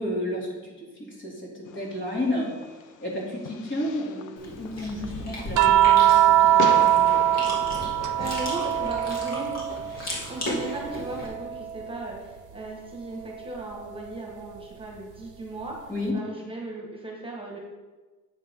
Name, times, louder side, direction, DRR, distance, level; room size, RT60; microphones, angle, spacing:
voice 1, 0.0-6.2 6.4-7.1 15.9-16.2, left 1 dB, 40° left, -4 dB, 3.0 m, -32 dB
Fireworks, 1.7-9.5, left 7 dB, 80° left, 0.6 m, -39 dB
Chewing mastication, 4.4-11.3, left 1 dB, 60° left, 2.7 m, -36 dB
sound 1, 5.6-10.0 10.4-12.0 13.6-13.7, right 12 dB, 80° right, 0.7 m, -22 dB
voice 2, 8.2-9.6 9.9-17.6, right 2 dB, 15° right, -1 dB, 1.7 m, -37 dB
8.6 x 7.3 x 3.8 m, 1.3 s
cardioid pair, 90°, 30 cm